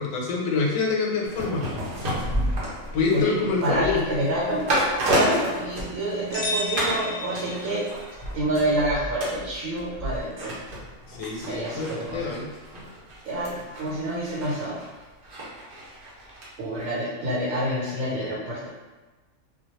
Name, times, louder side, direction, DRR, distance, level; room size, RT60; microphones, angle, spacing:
voice 1, 0.0-1.6 2.9-4.0 5.1-5.4 11.1-12.5, left 4 dB, 85° left, -1 dB, 1.0 m, -26 dB
sound 1, 1.3-6.4 6.8-7.0 7.4-16.5 16.8-16.9, right 1 dB, 50° right, 0.8 m, -31 dB
voice 2, 3.1-4.7 5.1-7.8 8.3-10.5 11.4-12.3 13.2-14.8 16.6-18.7, right 1 dB, 85° right, -6 dB, 1.1 m, -27 dB
sound 2, 6.3-8.1, left 1 dB, 50° left, 0.8 m, -31 dB
2.2 x 2.2 x 2.9 m, 1.2 s
omnidirectional pair, 1.4 m